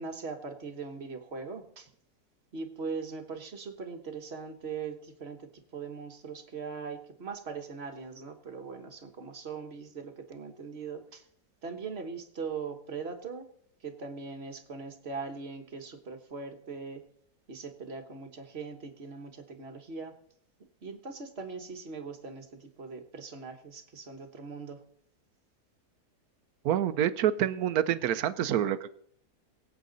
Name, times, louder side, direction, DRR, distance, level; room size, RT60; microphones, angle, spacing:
voice 1, 0.0-1.9 2.5-11.3 11.6-13.5 13.8-17.0 17.5-20.1 20.8-24.8, right 5 dB, 40° right, 6 dB, 1.4 m, -40 dB
voice 2, 26.6-28.9, right 10 dB, 70° right, 13 dB, 1.1 m, -27 dB
23.0 x 8.3 x 4.0 m, 0.68 s
omnidirectional pair, 1.7 m